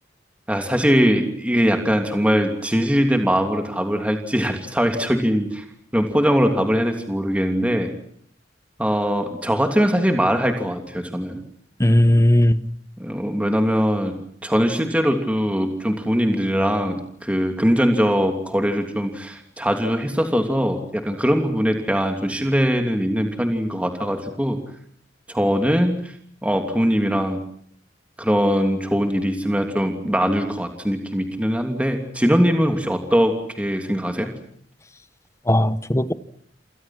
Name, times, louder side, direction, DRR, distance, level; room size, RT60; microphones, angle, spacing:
voice 1, 0.5-5.6 5.9-7.9 8.8-11.4 13.0-24.6 25.3-26.1 26.4-27.4 28.2-34.3, equal, 5° right, 3.0 m, -21 dB
voice 2, 11.8-12.6 35.5-36.1, left 1 dB, 15° left, 1.2 m, -16 dB
28.5 x 28.0 x 6.1 m
head